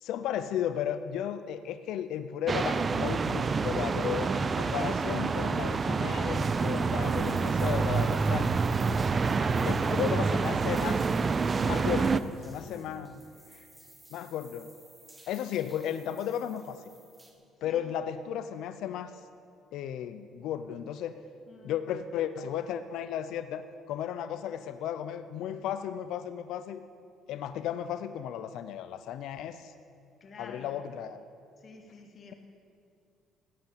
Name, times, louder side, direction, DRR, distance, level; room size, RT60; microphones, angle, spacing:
voice 1, 0.0-8.6 9.6-11.0 11.6-13.1 14.1-14.7 15.3-16.8 17.6-19.1 19.7-21.2 21.6-26.8 27.3-29.7 30.4-31.2, left 10 dB, 80° left, 11 dB, 0.5 m, -34 dB
sound 1, 2.5-12.2, right 4 dB, 35° right, 0.5 m, -27 dB
sound 2, 6.5-17.3, right 1 dB, 10° right, 2.2 m, -55 dB
voice 2, 9.3-10.5 11.6-12.3 12.6-12.9 13.5-13.7 17.6-17.8 21.5-21.8 30.2-30.8 31.6-32.4, left 4 dB, 45° left, 3 dB, 2.2 m, -49 dB
15.0 x 8.1 x 8.8 m, 2.4 s
cardioid pair, 100°, 0 cm